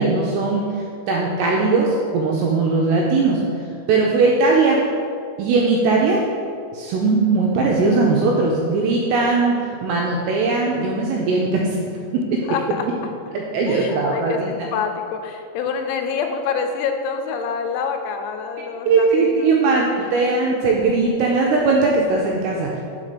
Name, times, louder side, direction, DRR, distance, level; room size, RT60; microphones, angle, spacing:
voice 1, 0.0-3.4 3.9-4.8 5.4-6.2 6.7-11.8 13.3-14.5 18.8-19.9 20.1-22.8, right 3 dB, 85° right, -2 dB, 2.5 m, -19 dB
voice 2, 12.5-12.9 13.7-19.5 20.0-20.1, left 6 dB, 85° left, 5 dB, 2.9 m, -26 dB
5.4 x 5.1 x 4.9 m, 2.4 s
omnidirectional pair, 5.3 m